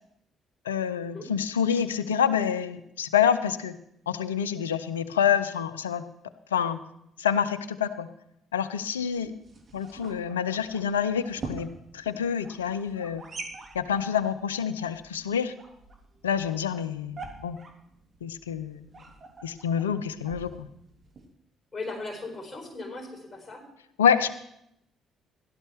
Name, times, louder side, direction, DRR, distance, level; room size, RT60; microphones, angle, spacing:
voice 1, 0.7-3.8 4.1-6.1 6.5-6.8 7.2-8.1 8.5-9.3 9.7-13.2 13.7-15.5 16.2-17.6 18.2-18.8 19.4-20.7 24.0-24.3, left 8 dB, 90° left, 14 dB, 0.5 m, -27 dB
sound 1, 8.9-21.3, right 3 dB, 40° right, 3.2 m, -45 dB
voice 2, 21.7-23.7, left 3 dB, 30° left, 2 dB, 4.5 m, -38 dB
16.5 x 12.0 x 3.5 m, 0.76 s
hypercardioid pair, 50°, 0 cm